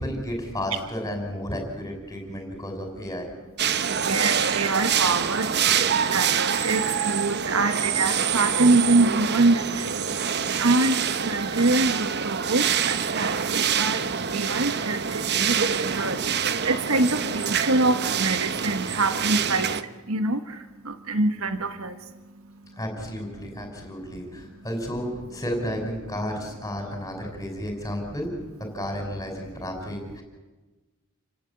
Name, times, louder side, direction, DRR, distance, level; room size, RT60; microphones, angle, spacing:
voice 1, 0.0-3.3 22.8-28.3 28.7-30.2, equal, 15° left, 3 dB, 5.8 m, -32 dB
sound 1, 3.6-19.8, right 7 dB, 50° right, 1.0 m, -26 dB
voice 2, 3.9-5.5 6.1-9.9 10.6-11.0 11.3-14.0 14.3-16.2 16.6-19.7 20.1-20.4 20.9-21.9, right 2 dB, 70° right, 9 dB, 1.3 m, -24 dB
29.0 x 17.5 x 9.0 m, 1.2 s
head